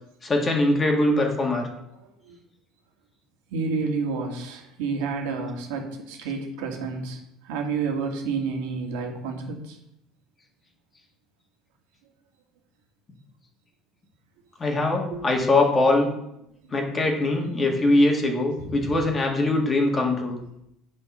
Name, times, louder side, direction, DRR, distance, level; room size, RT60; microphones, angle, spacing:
voice 1, 0.2-1.7 14.6-16.1 16.7-20.4, left 2 dB, 20° left, 2 dB, 1.8 m, -22 dB
voice 2, 3.5-7.2 7.4-9.8 15.1-15.2 16.9-17.0 18.6-19.0 19.5-19.6, right 4 dB, 90° right, 1 dB, 2.0 m, -30 dB
8.5 x 5.4 x 5.5 m, 0.80 s
cardioid pair, 135°, 0 cm